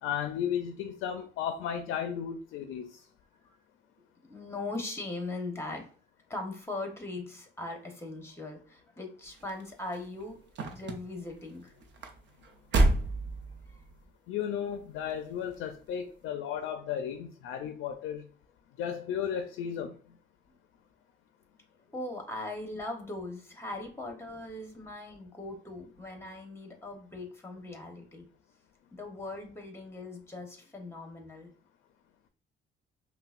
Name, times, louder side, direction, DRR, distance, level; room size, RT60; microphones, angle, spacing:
voice 1, 0.0-3.0 14.3-18.2 18.8-20.0, left 8 dB, 90° left, 0.4 m, -34 dB
voice 2, 4.3-5.9 6.3-11.8 13.7-13.8 20.5-20.6 21.9-28.3 28.9-31.5, left 2 dB, 10° left, 1.1 m, -40 dB
sound 1, 9.2-14.0 14.7-15.1 15.5-15.6, right 2 dB, 65° right, 0.7 m, -30 dB
5.4 x 2.2 x 2.5 m
cardioid pair, 90°, 20 cm